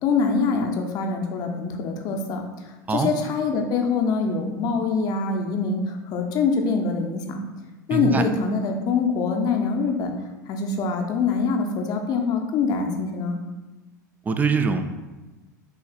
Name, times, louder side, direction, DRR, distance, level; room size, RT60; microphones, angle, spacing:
voice 1, 0.0-2.4 2.9-7.4 7.9-10.1 10.5-13.4, left 4 dB, 40° left, 3 dB, 0.6 m, -24 dB
voice 2, 7.9-8.2 14.3-14.8, right 5 dB, 15° right, 8 dB, 0.4 m, -22 dB
5.7 x 3.2 x 2.4 m, 1.2 s
figure-of-eight pair, 80°, 10 cm